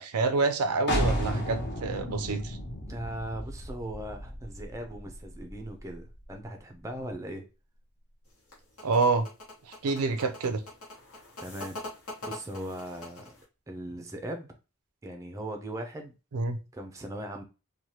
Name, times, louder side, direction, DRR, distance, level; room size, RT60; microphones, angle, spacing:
voice 1, 0.0-2.6 8.8-9.3 9.7-10.6 16.3-16.6, right 4 dB, 80° right, 0.4 m, -27 dB
sound 1, 0.9-6.4, equal, 50° left, 0.7 m, -33 dB
voice 2, 2.9-7.4 11.4-11.8 12.2-13.3 13.7-14.5 15.0-16.1 16.7-17.4, right 1 dB, 15° right, 0.4 m, -39 dB
sound 2, 8.3-13.4, left 2 dB, 75° left, 1.1 m, -43 dB
3.1 x 2.2 x 2.7 m
head